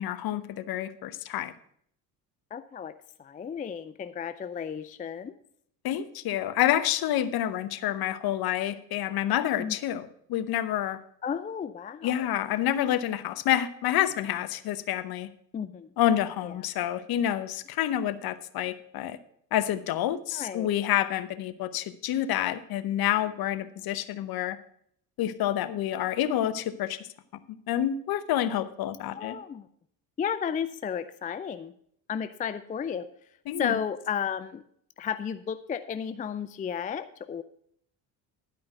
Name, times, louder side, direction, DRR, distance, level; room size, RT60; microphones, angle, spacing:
voice 1, 0.0-1.5 5.8-11.0 12.0-15.3 16.0-19.2 19.5-24.6 25.2-27.0 27.7-29.4 33.5-33.8, left 11 dB, 50° left, 12 dB, 0.9 m, -28 dB
voice 2, 2.5-2.9 3.2-5.4 9.6-9.8 11.2-12.3 15.5-15.9 16.4-16.6 20.3-20.7 29.1-29.7 30.2-31.7 32.1-33.1 33.6-34.6 35.0-37.4, left 7 dB, 15° left, 12 dB, 0.4 m, -33 dB
11.5 x 5.2 x 7.7 m, 0.66 s
hypercardioid pair, 60°, 48 cm